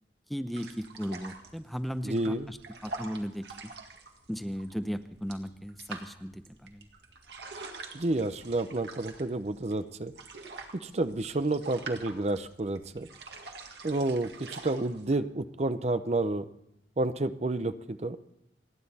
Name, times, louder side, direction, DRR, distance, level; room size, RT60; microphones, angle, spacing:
voice 1, 0.3-2.6 2.8-3.7 4.3-6.8, equal, ahead, 9 dB, 0.6 m, -36 dB
sound 1, 0.5-15.2, right 3 dB, 65° right, 1.9 m, -46 dB
voice 2, 2.0-2.5 7.9-10.1 10.8-13.1 13.8-16.4 17.0-18.2, right 2 dB, 35° right, 12 dB, 0.6 m, -30 dB
30.0 x 10.0 x 4.1 m, 0.82 s
head